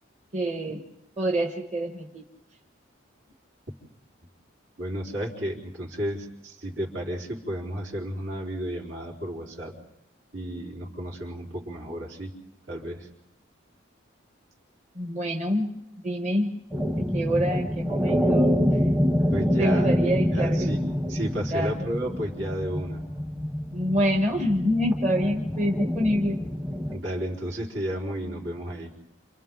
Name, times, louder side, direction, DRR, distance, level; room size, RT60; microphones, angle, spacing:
voice 1, 0.3-0.8 1.2-2.2 14.9-15.7 16.0-16.5 17.0-18.8 19.6-20.7 21.5-21.7 23.7-26.4, equal, 35° right, 2 dB, 1.3 m, -26 dB
voice 2, 4.8-9.7 10.3-12.3 12.7-13.1 19.3-20.0 20.3-20.8 21.1-23.0 26.9-28.9, equal, 80° right, -2 dB, 4.2 m, -32 dB
sound 1, 16.7-27.0, equal, 10° right, 0.8 m, -26 dB
30.0 x 27.5 x 3.9 m, 0.87 s
head